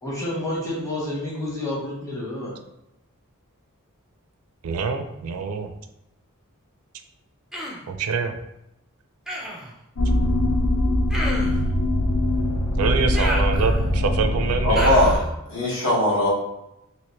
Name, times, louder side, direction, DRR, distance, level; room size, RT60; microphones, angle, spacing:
voice 1, 0.0-2.5, left 1 dB, 15° left, -5 dB, 1.0 m, -29 dB
voice 2, 4.6-5.7 7.9-8.4 12.8-14.9, right 5 dB, 75° right, 6 dB, 0.4 m, -25 dB
Human voice, 7.5-7.9 9.3-9.7 11.1-11.7 13.1-14.0 14.8-15.3, equal, ahead, 0.4 m, -31 dB
sound 1, 9.9-15.2, left 1 dB, 85° left, 0.6 m, -22 dB
voice 3, 14.6-15.2 15.5-16.3, left 1 dB, 60° left, -7 dB, 1.4 m, -19 dB
3.1 x 2.9 x 3.0 m, 0.85 s
head